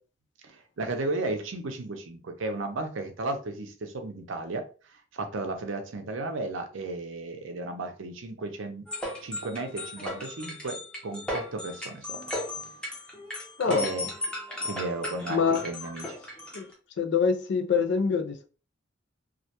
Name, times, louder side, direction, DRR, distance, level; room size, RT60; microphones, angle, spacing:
voice 1, 0.4-4.6 5.1-8.9 9.2-12.2 12.6-12.8 13.6-14.1 14.6-16.2, right 2 dB, 85° right, 0.5 m, -34 dB
sound 1, 8.9-16.7, left 1 dB, 5° left, 0.6 m, -36 dB
voice 2, 15.3-15.6 16.5-16.6 17.0-18.5, left 6 dB, 60° left, 0.4 m, -25 dB
2.3 x 2.1 x 2.8 m
head